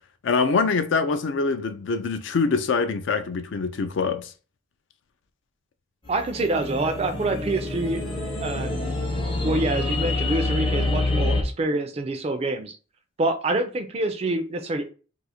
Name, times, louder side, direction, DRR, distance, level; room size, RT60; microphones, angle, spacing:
voice 1, 0.2-4.3, left 4 dB, 65° left, 0.3 m, -24 dB
sound 1, 6.1-11.4, left 2 dB, 25° left, 0.6 m, -27 dB
voice 2, 6.1-8.0 8.4-8.9 9.4-12.8 13.2-14.9, right 2 dB, 30° right, 0.3 m, -26 dB
2.4 x 2.4 x 4.1 m
head